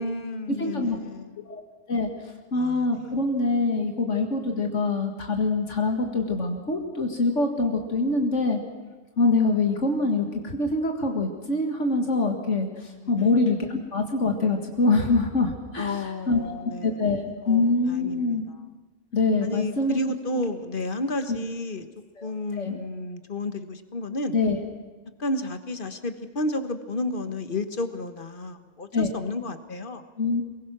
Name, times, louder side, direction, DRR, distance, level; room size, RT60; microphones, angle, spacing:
voice 1, 0.0-1.4 2.5-3.0 13.2-13.3 15.8-17.0 17.4-18.4 19.4-21.9 22.2-24.4 25.2-30.0, left 2 dB, 45° left, 9 dB, 1.4 m, -32 dB
voice 2, 0.6-1.0 1.5-1.6 1.9-2.1 2.5-8.6 9.2-18.4 19.1-20.0 21.3-21.4 22.2-22.8 24.3-24.6 28.9-29.1 30.2-30.4, left 3 dB, 70° left, 3 dB, 2.2 m, -24 dB
23.5 x 21.0 x 6.1 m, 1.3 s
omnidirectional pair, 1.3 m